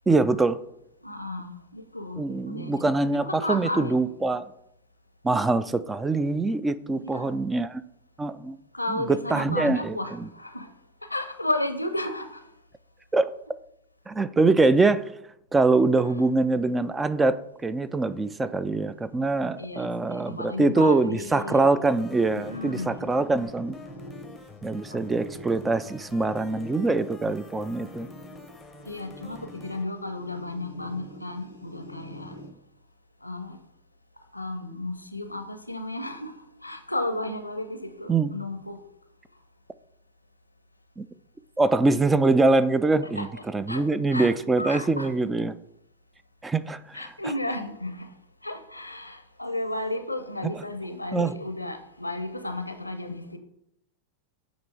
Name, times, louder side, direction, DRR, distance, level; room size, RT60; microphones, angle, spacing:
voice 1, 0.1-0.6 2.2-4.5 5.2-7.8 8.2-8.6 8.9-10.3 13.1-13.3 14.1-15.1 15.5-23.8 24.6-28.1 38.1-38.3 41.0-41.1 41.6-43.3 43.5-45.6 46.4-47.1 51.1-51.3, right 3 dB, 10° right, 0.3 m, -24 dB
voice 2, 1.0-2.9 3.2-4.0 6.9-7.4 8.7-10.7 11.0-12.4 19.6-21.7 22.3-23.1 24.9-25.0 28.9-32.4 33.2-33.6 34.3-36.3 36.6-38.8 43.2-44.3 44.6-45.1 46.9-48.1 48.4-53.4, left 1 dB, 85° left, 0.6 m, -33 dB
sound 1, 21.8-29.9, left 2 dB, 5° left, 0.8 m, -48 dB
sound 2, 22.0-32.5, left 1 dB, 90° right, 1.9 m, -45 dB
8.9 x 3.0 x 4.7 m
figure-of-eight pair, 90°, 0 cm